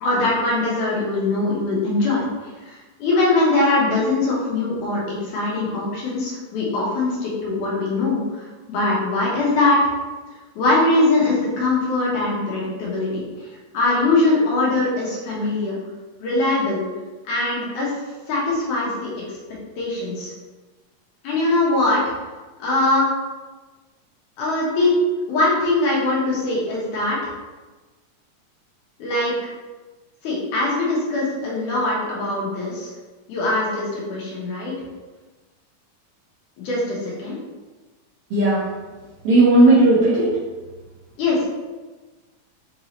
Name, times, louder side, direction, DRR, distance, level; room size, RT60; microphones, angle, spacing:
voice 1, 0.0-9.8 10.6-13.2 13.7-15.8 16.2-16.8 17.3-18.0 18.3-19.4 19.8-20.3 21.2-22.0 22.6-23.1 24.4-24.9 25.3-27.2 29.0-29.3 30.2-32.9 33.3-34.7 36.6-37.4 41.2-41.5, left 2 dB, 75° left, -5 dB, 2.6 m, -22 dB
voice 2, 38.3-38.7 39.2-40.3, right 2 dB, 60° right, -9 dB, 1.7 m, -14 dB
6.0 x 2.7 x 3.0 m, 1.3 s
omnidirectional pair, 3.6 m